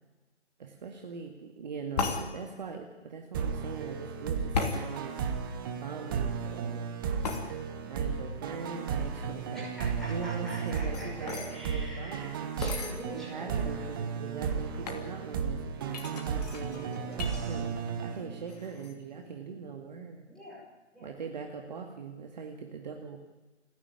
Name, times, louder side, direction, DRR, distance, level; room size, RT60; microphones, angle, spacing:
voice 1, 0.6-5.2 5.7-6.9 7.9-9.7 10.1-12.5 13.1-20.2 21.0-23.2, right 5 dB, 40° right, 3 dB, 2.1 m, -41 dB
sound 1, 2.0-2.2 4.5-4.8 7.2-7.4 10.5-11.5 12.6-12.9 13.6-13.7 13.9-14.3 14.8-15.1 15.9-17.4 17.7-18.2 18.5-18.9, left 4 dB, 35° left, 2.8 m, -34 dB
sound 2, 3.3-18.8, right 6 dB, 20° right, 1.3 m, -34 dB
voice 2, 9.5-12.3 12.6-13.8 17.0-17.6 20.3-20.7 20.9-21.1, equal, ahead, -7 dB, 6.2 m, -44 dB
29.5 x 11.0 x 9.7 m, 1.2 s
figure-of-eight pair, 150°, 36 cm